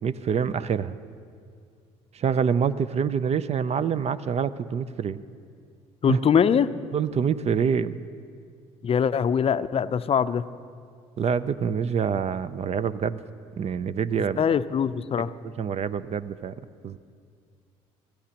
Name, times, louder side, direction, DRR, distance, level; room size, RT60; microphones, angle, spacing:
voice 1, 0.0-1.0 2.1-5.2 6.1-6.3 6.9-8.0 11.2-13.2 13.6-14.4 15.6-16.5 16.8-17.0, right 7 dB, 40° right, 16 dB, 0.5 m, -26 dB
voice 2, 6.0-6.7 8.8-10.5 14.4-15.3, left 7 dB, 35° left, 14 dB, 0.5 m, -22 dB
24.0 x 15.0 x 2.9 m, 2.2 s
hypercardioid pair, 60°, 16 cm